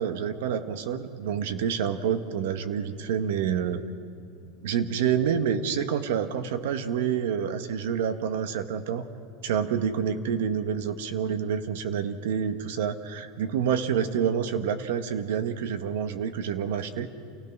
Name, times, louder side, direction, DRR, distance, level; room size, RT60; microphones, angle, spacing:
voice 1, 0.0-3.8 4.6-9.1 9.4-17.1, right 8 dB, 80° right, 9 dB, 1.3 m, -28 dB
29.0 x 16.5 x 6.1 m, 2.7 s
supercardioid pair, 170°, 0 cm